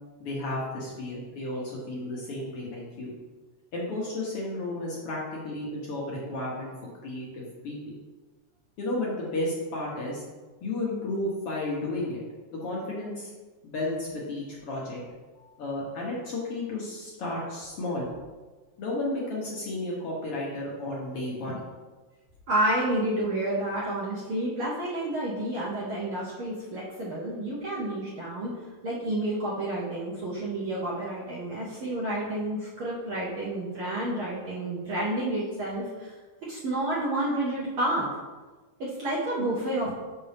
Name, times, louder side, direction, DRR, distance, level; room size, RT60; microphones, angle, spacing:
voice 1, 0.2-3.1 3.7-6.7 7.0-8.0 8.8-10.2 10.6-12.2 12.5-13.3 13.6-15.0 15.6-18.1 18.8-21.6 39.8-39.9, left 2 dB, 60° left, -5 dB, 1.7 m, -33 dB
voice 2, 22.5-28.5 28.8-36.1 36.4-38.1 38.8-39.9, right 1 dB, 60° right, -7 dB, 1.5 m, -30 dB
5.9 x 5.5 x 3.4 m, 1.3 s
omnidirectional pair, 3.4 m